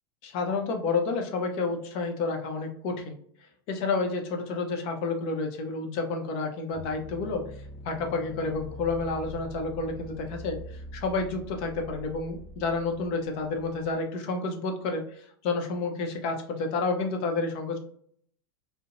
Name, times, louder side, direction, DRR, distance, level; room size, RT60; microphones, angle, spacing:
voice 1, 0.2-3.2 3.7-7.4 7.8-17.8, left 3 dB, 50° left, 4 dB, 0.7 m, -30 dB
sound 1, 6.7-13.9, equal, 10° left, 0.4 m, -44 dB
2.5 x 2.1 x 2.8 m, 0.63 s
supercardioid pair, 130°, 13 cm